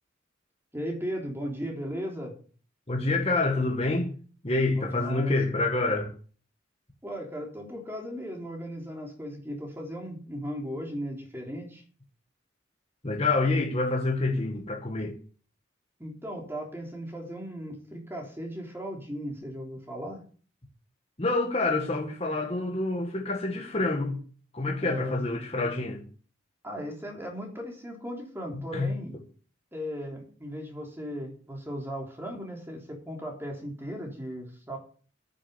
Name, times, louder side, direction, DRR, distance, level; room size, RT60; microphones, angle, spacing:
voice 1, 0.7-2.3 4.8-5.4 7.0-11.8 16.0-20.2 24.8-25.2 26.6-29.1 29.7-34.8, equal, 10° right, 3.5 m, -37 dB
voice 2, 2.9-4.1 4.4-6.1 13.0-15.1 21.2-24.2 24.5-26.0 28.5-29.0, left 2 dB, 30° left, 1.6 m, -27 dB
9.7 x 7.5 x 8.2 m
head